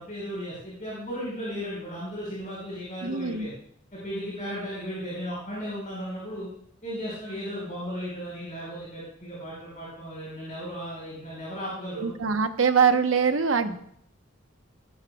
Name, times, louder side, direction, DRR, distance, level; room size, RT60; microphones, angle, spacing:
voice 1, 0.0-3.5 3.9-6.5 6.8-12.1 13.6-13.7, equal, 40° left, -7 dB, 5.4 m, -35 dB
voice 2, 3.0-3.5 12.0-13.7, right 6 dB, 90° right, 8 dB, 1.0 m, -23 dB
20.5 x 13.0 x 2.4 m, 0.66 s
head